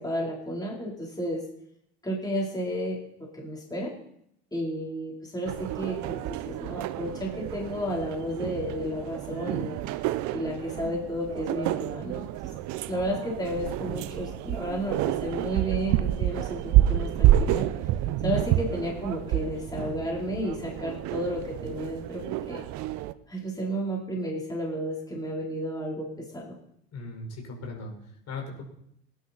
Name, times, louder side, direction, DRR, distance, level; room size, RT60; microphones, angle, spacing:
voice 1, 0.0-1.4 2.0-3.9 4.5-9.8 10.3-12.5 12.9-17.7 18.2-22.6 23.3-26.6, equal, 10° left, -2 dB, 3.7 m, -32 dB
sound 1, 5.5-23.1, right 13 dB, 55° right, 0.8 m, -29 dB
voice 2, 26.9-28.6, left 3 dB, 50° left, 1 dB, 5.0 m, -38 dB
19.0 x 10.5 x 4.2 m, 0.74 s
hypercardioid pair, 70°, 33 cm